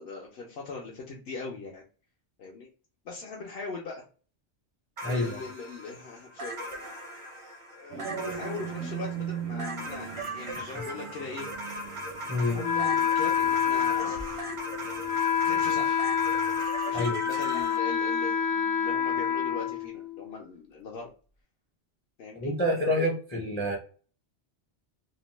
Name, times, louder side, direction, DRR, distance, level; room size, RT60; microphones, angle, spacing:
voice 1, 0.0-1.8 2.4-2.7 3.0-4.0 5.0-11.5 12.4-14.3 15.5-16.0 16.8-21.1 22.2-22.5, left 4 dB, 65° left, -1 dB, 0.8 m, -41 dB
voice 2, 5.0-5.4 10.6-10.8 12.3-12.6 16.9-17.2 22.3-23.8, left 1 dB, 15° left, 0 dB, 0.4 m, -28 dB
sound 1, 5.0-17.8, right 1 dB, 40° right, 0.4 m, -39 dB
sound 2, 7.9-16.6, right 7 dB, 80° right, 0.9 m, -40 dB
Wind instrument woodwind instrument, 12.6-20.4, left 8 dB, 90° left, 1.0 m, -28 dB
2.7 x 2.1 x 3.0 m, 0.38 s
omnidirectional pair, 1.2 m